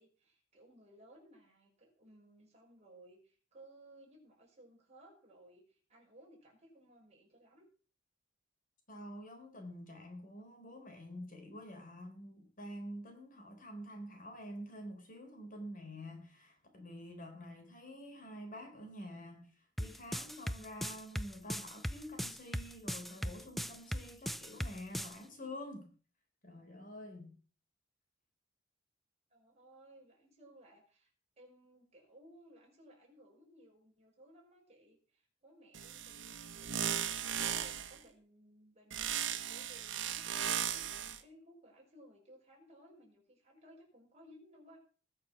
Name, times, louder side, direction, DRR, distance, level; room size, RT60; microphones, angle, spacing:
voice 1, 0.0-7.7 29.3-31.1 31.4-36.4 36.6-44.8, right 1 dB, 35° right, -1 dB, 5.8 m, -60 dB
voice 2, 8.9-25.9 26.4-27.4, equal, 45° left, 4 dB, 4.1 m, -48 dB
sound 1, 19.8-25.1, equal, ahead, 0.5 m, -38 dB
sound 2, 35.7-38.0 38.9-41.2, right 9 dB, 90° right, 1.4 m, -37 dB
20.0 x 6.6 x 6.0 m, 0.40 s
head